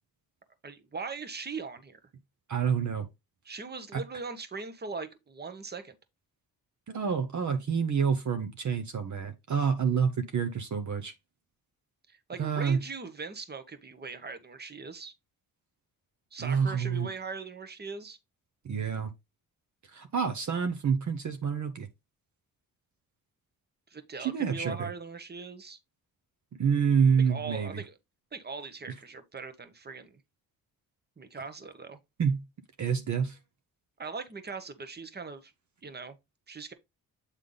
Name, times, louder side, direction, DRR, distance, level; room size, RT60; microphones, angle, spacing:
voice 1, 0.6-2.0 3.4-5.9 12.1-15.1 16.3-18.2 23.9-25.8 27.3-28.0 28.3-30.2 31.2-32.0 34.0-35.5 35.8-36.2 36.5-36.7, right 4 dB, 25° right, 1.1 m, -40 dB
voice 2, 2.5-3.1 3.9-4.0 6.9-11.1 12.4-12.8 16.4-17.1 18.6-19.1 19.8-21.9 24.2-24.9 26.6-27.8 32.2-32.4 32.8-33.4, right 6 dB, 50° right, 0.9 m, -28 dB
8.3 x 3.4 x 3.9 m
cardioid pair, 75°, 37 cm